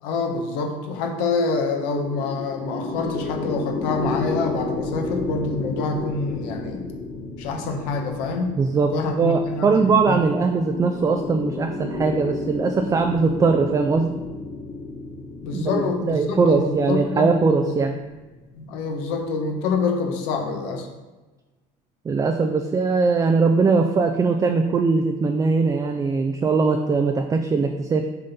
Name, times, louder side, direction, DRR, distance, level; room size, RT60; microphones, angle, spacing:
voice 1, 0.0-6.9 7.4-8.6 8.9-10.2 15.4-17.3 17.6-17.7 18.5-20.9, left 4 dB, 85° left, 3 dB, 1.3 m, -26 dB
sound 1, 1.4-18.6, left 3 dB, 65° left, 1.4 m, -33 dB
voice 2, 8.6-14.2 15.5-18.0 22.0-28.1, right 4 dB, 20° right, 5 dB, 0.4 m, -21 dB
6.4 x 4.3 x 5.6 m, 1.2 s
cardioid pair, 120°, 17 cm